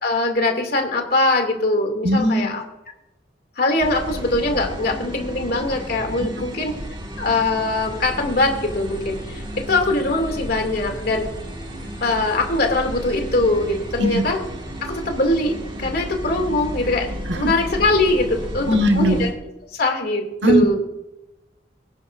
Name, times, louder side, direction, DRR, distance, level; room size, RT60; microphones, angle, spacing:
voice 1, 0.0-2.6 3.6-6.7 7.2-11.3 12.0-14.4 14.8-17.1 17.3-19.3 19.7-20.8, left 2 dB, 60° left, 2 dB, 2.6 m, -22 dB
voice 2, 2.0-2.5 14.0-14.2 17.3-17.5 18.7-19.2 20.4-20.6, equal, 75° right, 5 dB, 1.5 m, -18 dB
sound 1, 3.8-19.3, equal, 25° right, 1.9 m, -33 dB
24.5 x 9.9 x 2.6 m, 0.94 s
head